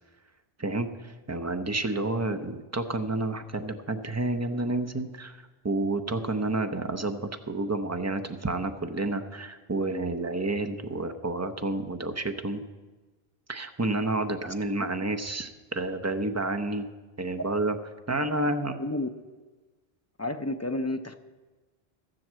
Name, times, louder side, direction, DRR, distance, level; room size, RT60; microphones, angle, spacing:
voice 1, 0.6-12.6 13.5-16.9 17.2-17.7 18.1-18.8, right 2 dB, 20° right, 7 dB, 0.6 m, -30 dB
voice 2, 18.8-19.1 20.2-21.1, left 2 dB, 25° left, 7 dB, 0.4 m, -30 dB
13.0 x 7.7 x 7.4 m, 1.3 s
omnidirectional pair, 1.0 m